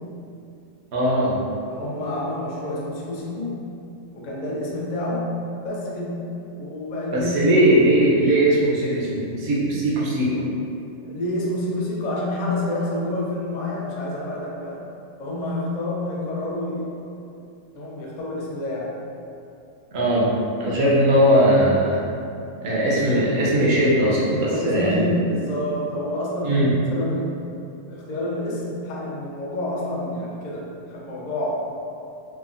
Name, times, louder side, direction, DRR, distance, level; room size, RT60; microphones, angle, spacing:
voice 1, 0.9-1.4 7.1-10.4 19.9-20.3 20.6-22.0 22.6-25.1 26.4-26.8, right 1 dB, 65° right, -6 dB, 0.8 m, -19 dB
voice 2, 1.7-3.6 4.1-7.5 11.0-14.9 15.2-17.0 17.7-19.0 24.4-27.5 27.9-31.5, left 1 dB, 75° left, -4 dB, 0.4 m, -28 dB
3.3 x 2.0 x 2.4 m, 2.6 s
omnidirectional pair, 1.4 m